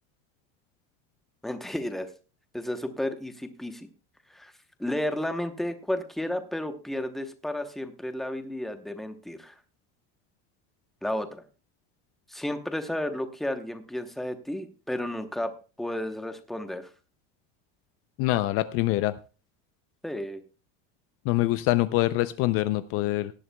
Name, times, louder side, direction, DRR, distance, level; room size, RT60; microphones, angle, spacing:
voice 1, 1.4-2.1 2.5-3.9 4.3-4.5 4.8-9.6 11.0-11.4 12.3-15.5 15.8-16.9 20.0-20.4, left 1 dB, ahead, 7 dB, 0.8 m, -32 dB
voice 2, 18.2-19.1 21.3-23.3, left 17 dB, 45° left, 13 dB, 0.5 m, -25 dB
18.0 x 11.0 x 2.2 m, 0.33 s
cardioid pair, 165°, 31 cm